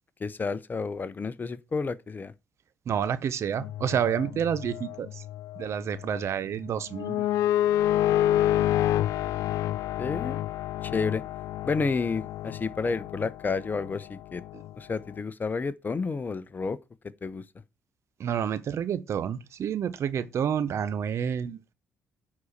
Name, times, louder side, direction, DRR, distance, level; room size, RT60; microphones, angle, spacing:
voice 1, 0.2-2.3 10.0-10.4 10.8-11.2 11.7-14.4 14.8-16.8 17.2-17.4, left 4 dB, 35° left, 0.9 m, -30 dB
voice 2, 2.9-5.2 5.6-7.3 18.2-21.6, right 8 dB, 55° right, 1.0 m, -29 dB
sound 1, 3.6-6.3 6.6-14.7, left 12 dB, 70° left, 0.4 m, -29 dB
9.6 x 4.2 x 6.5 m
hypercardioid pair, 55°, 5 cm